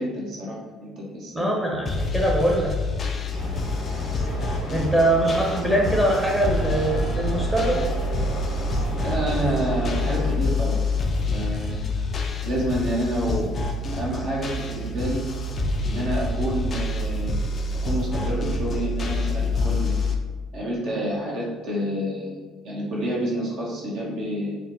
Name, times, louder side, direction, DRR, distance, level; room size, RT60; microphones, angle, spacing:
voice 1, 0.0-1.5 3.3-3.4 9.0-10.8 11.3-11.8 12.4-13.5 13.9-15.3 15.9-17.3 17.9-19.9 20.5-24.6, equal, 60° right, -4 dB, 0.6 m, -28 dB
voice 2, 1.3-2.7 4.7-7.8, right 1 dB, 5° right, -2 dB, 0.6 m, -22 dB
sound 1, 1.9-20.2, left 2 dB, 40° left, 0.3 m, -27 dB
sound 2, 3.3-10.4, equal, 75° left, 0.9 m, -32 dB
3.3 x 2.0 x 2.5 m, 1.4 s
figure-of-eight pair, 55°, 0 cm